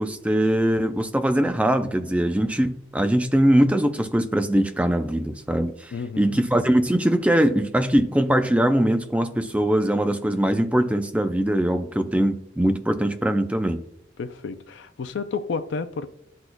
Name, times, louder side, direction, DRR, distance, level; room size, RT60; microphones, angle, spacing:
voice 1, 0.0-13.8, right 1 dB, 5° right, 0.4 m, -22 dB
voice 2, 5.9-6.4 14.2-16.1, left 5 dB, 70° left, 0.4 m, -31 dB
11.0 x 4.2 x 2.2 m
head